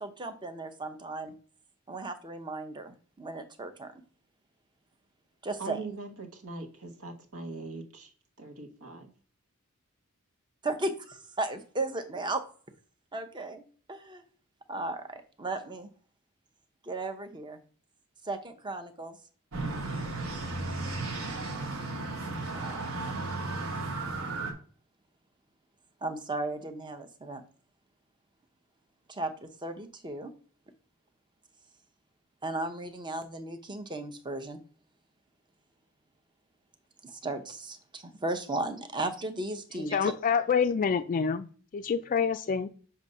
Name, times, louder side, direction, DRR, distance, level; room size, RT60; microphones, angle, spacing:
voice 1, 0.0-1.3 1.9-4.0 5.4-5.9 10.6-12.4 13.1-14.2 14.7-15.9 16.8-17.6 18.2-19.2 22.5-23.3 26.0-27.4 29.1-30.3 32.4-34.6 37.0-40.1, right 2 dB, 20° right, 8 dB, 0.7 m, -36 dB
voice 2, 5.6-8.1 8.4-9.1, right 3 dB, 85° right, 5 dB, 1.2 m, -41 dB
sound 1, 19.5-24.5, right 3 dB, 65° right, 1.2 m, -34 dB
voice 3, 39.8-41.5 41.7-42.7, left 6 dB, 40° left, 8 dB, 0.3 m, -27 dB
6.7 x 2.7 x 5.3 m, 0.43 s
head